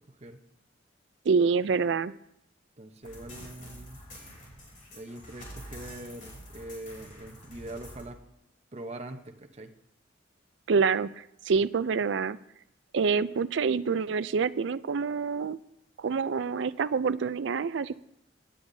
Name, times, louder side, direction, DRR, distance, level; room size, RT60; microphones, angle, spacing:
voice 1, 0.1-0.4 2.8-4.0 4.9-8.2 8.7-9.7, right 1 dB, 35° right, 5 dB, 0.9 m, -43 dB
voice 2, 1.3-2.1 10.7-12.4 12.9-15.6 16.0-17.9, right 5 dB, 70° right, 16 dB, 0.4 m, -27 dB
sound 1, 3.0-8.1, equal, 45° left, 3.5 m, -47 dB
17.0 x 10.0 x 2.7 m, 0.77 s
head